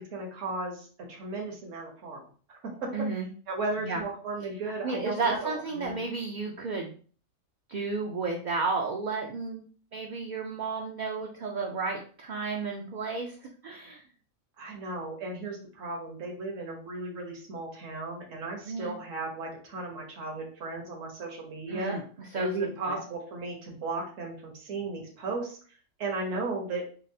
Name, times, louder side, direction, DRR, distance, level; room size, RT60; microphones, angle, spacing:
voice 1, 0.0-2.2 2.5-2.9 3.5-6.0 14.6-22.0 22.3-25.6 26.0-26.8, right 2 dB, 75° right, -1 dB, 1.4 m, -35 dB
voice 2, 2.9-3.3 3.8-4.0 4.8-6.9 7.7-9.7 9.9-14.0 18.6-19.0 21.7-22.5 22.8-23.0, right 4 dB, 60° right, 0 dB, 0.5 m, -32 dB
5.6 x 2.0 x 2.6 m, 0.42 s
omnidirectional pair, 1.3 m